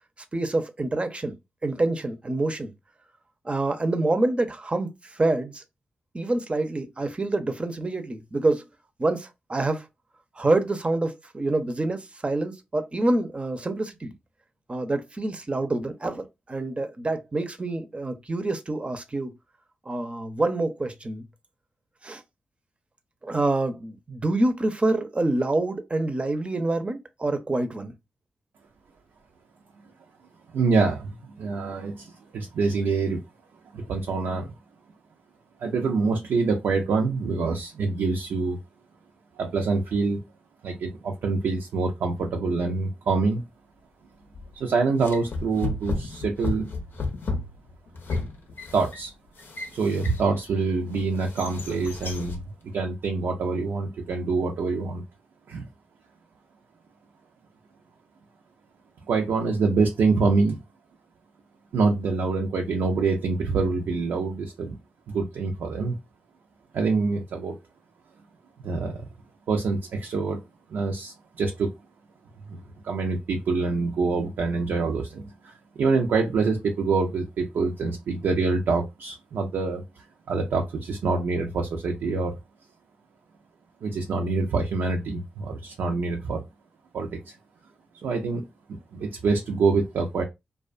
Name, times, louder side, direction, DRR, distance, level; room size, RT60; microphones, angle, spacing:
voice 1, 0.3-1.3 1.6-2.7 3.4-5.6 6.1-8.7 9.0-9.9 10.4-14.1 14.7-19.3 19.9-21.2 22.0-22.2 23.2-27.9, right 2 dB, 30° right, 0.6 m, -26 dB
voice 2, 30.5-33.2 33.7-34.5 35.6-38.6 39.4-40.2 40.6-43.4 44.5-46.7 48.7-49.1 49.7-52.4 52.7-55.0 55.5-55.7 59.1-60.6 61.7-64.8 65.1-66.0 66.7-67.6 68.6-69.1 69.5-70.4 70.7-71.7 72.5-72.6 72.8-75.5 75.8-79.8 80.3-82.4 83.8-86.4 86.9-87.3 88.0-88.4 88.9-90.2, right 4 dB, 80° right, 0.4 m, -25 dB
sound 1, 44.3-44.6 45.0-50.5 50.9-52.5, left 3 dB, 70° left, 0.7 m, -33 dB
2.4 x 2.2 x 2.4 m
supercardioid pair, 45°, 4 cm